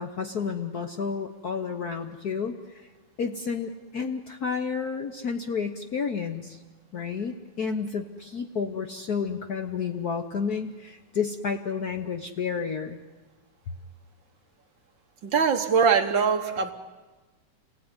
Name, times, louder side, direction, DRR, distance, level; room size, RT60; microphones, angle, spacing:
voice 1, 0.0-2.9 3.2-6.6 6.9-13.0, left 6 dB, 85° left, 6 dB, 0.8 m, -31 dB
voice 2, 15.2-16.7, right 6 dB, 55° right, 6 dB, 1.5 m, -22 dB
28.0 x 20.0 x 9.8 m, 1.2 s
omnidirectional pair, 3.3 m